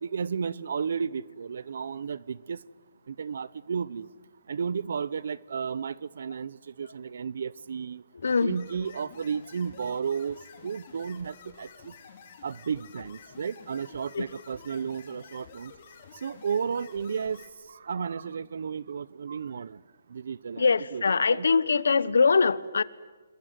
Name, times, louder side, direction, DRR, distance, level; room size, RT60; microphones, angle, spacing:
voice 1, 0.0-2.6 3.1-4.1 4.5-8.0 8.4-10.4 10.6-11.9 12.4-15.7 16.2-19.8 20.1-20.7 20.9-21.5, right 6 dB, 65° right, 0.8 m, -33 dB
voice 2, 8.2-8.6 14.1-14.3 20.6-22.8, left 4 dB, 90° left, 1.1 m, -23 dB
sound 1, 8.2-17.5, left 7 dB, 45° left, 4.3 m, -51 dB
28.0 x 21.5 x 9.2 m
hypercardioid pair, 165°, 0 cm